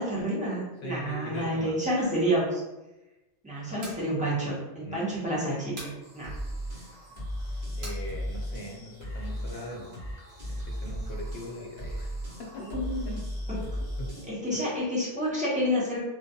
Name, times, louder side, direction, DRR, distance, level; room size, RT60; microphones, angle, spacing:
voice 1, 0.0-2.6 3.4-6.3 12.6-13.2 13.5-13.6 14.3-16.0, equal, 10° right, -8 dB, 0.6 m, -29 dB
voice 2, 0.8-1.7 3.7-3.8 4.8-5.0 6.7-6.9 7.8-9.9 10.5-12.7 13.1-13.2 14.0-14.2 14.5-14.6, left 1 dB, 70° left, -1 dB, 0.8 m, -40 dB
sound 1, 3.8-4.1 5.8-6.0 7.8-8.0, right 1 dB, 65° right, 1.1 m, -41 dB
sound 2, 6.0-14.3, equal, 40° right, 0.8 m, -36 dB
2.3 x 2.2 x 2.6 m, 1.0 s
omnidirectional pair, 1.2 m